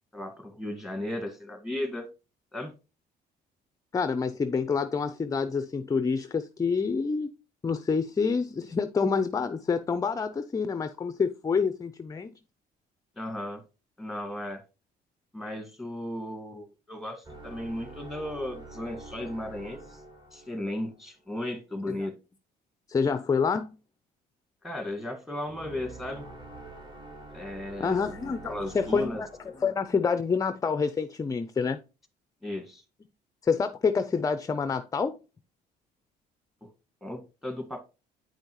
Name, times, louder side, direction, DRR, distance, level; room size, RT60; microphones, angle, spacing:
voice 1, 0.1-2.1 2.5-2.7 13.2-13.6 14.0-14.6 15.3-20.0 20.3-22.1 24.6-26.3 27.3-29.2 32.4-32.8 36.6-36.7 37.0-37.8, left 1 dB, ahead, 1.7 m, -35 dB
voice 2, 3.9-7.3 7.6-12.3 21.9-22.1 22.9-23.8 27.8-29.3 29.6-31.8 33.4-35.2, left 5 dB, 20° left, 0.5 m, -27 dB
sound 1, 17.2-21.0 25.5-30.3, right 2 dB, 30° right, 2.2 m, -46 dB
9.2 x 5.2 x 3.0 m
cardioid pair, 110°, 17 cm